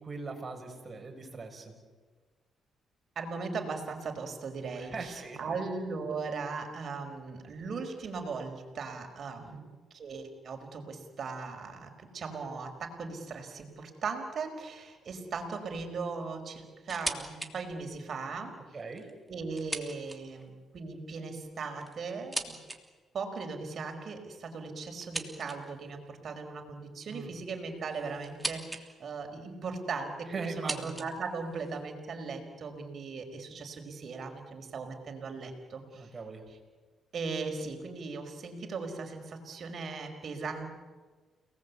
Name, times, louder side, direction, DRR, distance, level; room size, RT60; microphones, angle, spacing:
voice 1, 0.0-1.7 4.8-5.4 9.5-9.7 18.7-19.0 27.1-27.3 30.3-30.9 35.9-36.4, right 4 dB, 35° right, 3 dB, 6.6 m, -40 dB
voice 2, 3.1-9.6 9.9-18.5 19.3-22.6 23.1-36.1 36.5-36.6 37.1-40.7, right 4 dB, 55° right, 5 dB, 5.0 m, -38 dB
sound 1, 16.9-17.5 17.9-18.0 18.8-20.5 21.4-22.8 25.0-25.8 27.1-28.9 29.1-29.7 30.4-31.9, right 2 dB, 10° right, 3.0 m, -40 dB
30.0 x 19.5 x 8.6 m, 1.4 s
cardioid pair, 90°, 0 cm